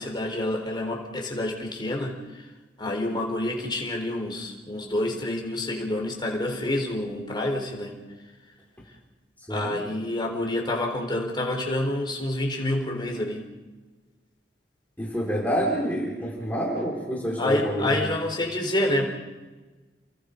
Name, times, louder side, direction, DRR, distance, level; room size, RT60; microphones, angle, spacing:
voice 1, 0.0-2.5 2.8-8.0 9.5-13.4 17.4-19.1, left 1 dB, 25° left, 1 dB, 4.3 m, -28 dB
voice 2, 9.5-9.8 15.0-18.1, equal, 10° left, -3 dB, 4.4 m, -28 dB
30.0 x 23.0 x 5.3 m, 1.3 s
head